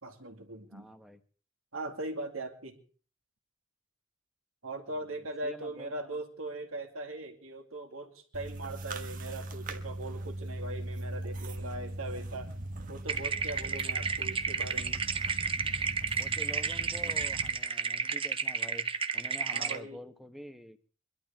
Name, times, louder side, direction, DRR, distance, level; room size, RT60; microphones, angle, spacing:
voice 1, 0.0-0.9 1.7-2.8 4.6-12.5 12.9-15.0 19.5-20.0, right 2 dB, 85° right, 4 dB, 2.5 m, -40 dB
voice 2, 0.7-1.2 4.9-6.2 16.2-18.9 19.1-20.9, equal, ahead, 8 dB, 1.1 m, -47 dB
sound 1, 8.3-17.5, right 1 dB, 40° right, 1.4 m, -40 dB
sound 2, 13.1-19.8, right 5 dB, 25° right, 0.8 m, -32 dB
24.0 x 12.0 x 3.6 m, 0.40 s
head